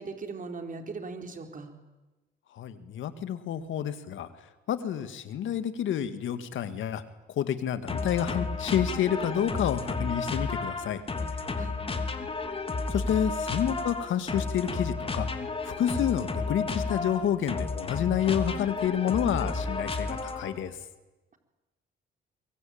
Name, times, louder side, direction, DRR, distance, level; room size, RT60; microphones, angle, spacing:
voice 1, 0.0-1.7 11.5-11.7, right 4 dB, 40° right, 5 dB, 4.3 m, -39 dB
voice 2, 2.6-4.3 4.7-7.0 7.4-11.0 12.9-15.3 15.6-20.7, left 9 dB, 75° left, 11 dB, 2.2 m, -29 dB
sound 1, 7.9-20.6, left 3 dB, 30° left, 3.1 m, -32 dB
23.5 x 22.5 x 8.8 m, 1.1 s
cardioid pair, 90°, 20 cm